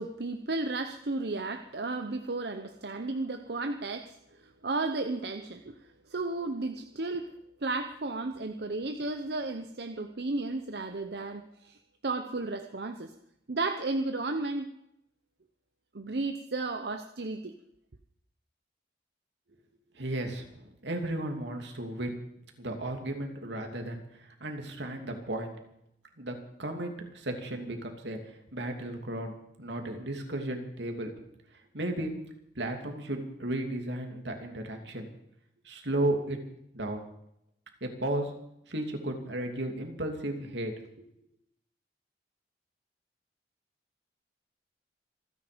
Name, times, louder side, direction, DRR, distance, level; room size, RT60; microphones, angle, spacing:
voice 1, 0.0-4.2 4.6-5.7 6.1-7.3 7.6-13.1 13.5-14.7 15.9-17.5, right 3 dB, 65° right, 7 dB, 0.9 m, -33 dB
voice 2, 19.9-22.2 22.6-25.6 26.2-31.1 31.7-32.1 32.5-35.1 35.6-36.4 36.7-37.0 37.8-38.3 38.7-41.0, right 1 dB, 85° right, 3 dB, 2.9 m, -34 dB
26.5 x 10.0 x 5.2 m, 0.78 s
head